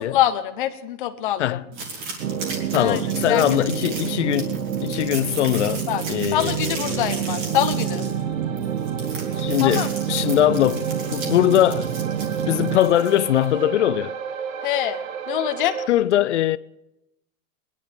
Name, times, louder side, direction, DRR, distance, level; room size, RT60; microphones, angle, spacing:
voice 1, 0.0-1.6 2.7-3.0 3.3-3.4 5.9-6.0 6.3-8.1 9.6-9.9 14.6-15.0 15.3-15.8, left 12 dB, 35° left, 0.9 m, -24 dB
sound 1, 1.7-13.5, right 3 dB, 30° right, 2.4 m, -36 dB
sound 2, 2.2-12.8, right 9 dB, 80° right, 1.4 m, -28 dB
voice 2, 2.7-7.1 9.4-11.9 12.5-14.1 15.9-16.6, left 13 dB, 55° left, 0.4 m, -21 dB
sound 3, 5.5-15.9, right 6 dB, 60° right, 1.1 m, -34 dB
21.5 x 10.5 x 5.1 m
supercardioid pair, 175°, 44 cm